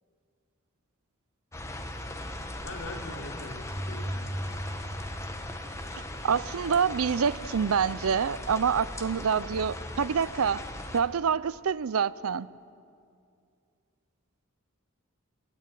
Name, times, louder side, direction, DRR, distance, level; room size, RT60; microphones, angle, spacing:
sound 1, 1.5-11.0, left 1 dB, 15° left, 1.4 m, -39 dB
voice 1, 2.6-4.3 7.5-7.6, left 2 dB, 70° left, 1 dB, 3.4 m, -42 dB
sound 2, 3.5-6.4, equal, 40° left, 3.4 m, -37 dB
voice 2, 6.2-10.6 10.9-12.5, right 6 dB, 80° right, 19 dB, 0.5 m, -26 dB
27.0 x 13.0 x 9.1 m, 2.3 s
head